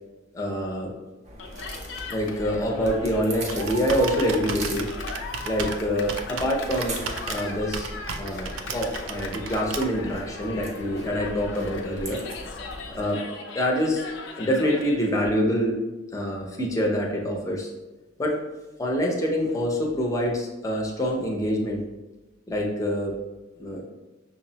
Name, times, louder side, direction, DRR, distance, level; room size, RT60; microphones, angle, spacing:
voice 1, 0.3-0.9 2.1-4.9 5.4-7.0 7.3-7.9 8.2-12.2 12.9-13.2 13.5-14.0 14.4-15.8 16.1-17.7 18.2-18.4 18.8-21.8 22.5-23.1 23.6-23.8, equal, 15° left, -1 dB, 0.6 m, -26 dB
sound 1, 1.2-13.1, right 1 dB, 35° right, 0.6 m, -40 dB
Cheering, 1.4-15.1, left 3 dB, 70° left, 0.5 m, -39 dB
Computer keyboard, 2.8-10.2, right 4 dB, 85° right, 0.4 m, -36 dB
5.8 x 2.0 x 2.8 m, 1.1 s
head